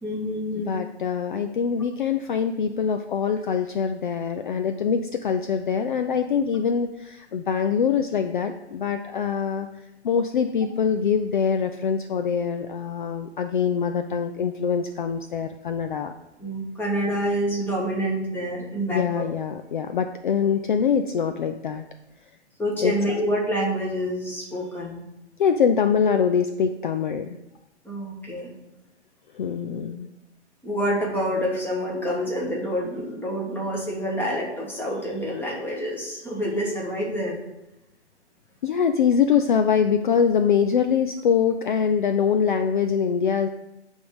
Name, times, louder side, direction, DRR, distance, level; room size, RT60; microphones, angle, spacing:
voice 1, 0.0-0.7 16.4-19.3 22.6-25.0 27.8-28.5 30.6-37.4, equal, 5° left, -3 dB, 1.5 m, -27 dB
voice 2, 0.5-9.7 10.0-16.1 18.9-21.8 22.8-22.9 25.4-27.4 29.3-30.1 38.6-43.5, left 7 dB, 45° left, 7 dB, 0.5 m, -24 dB
9.3 x 3.6 x 6.5 m, 0.91 s
figure-of-eight pair, 120°, 35 cm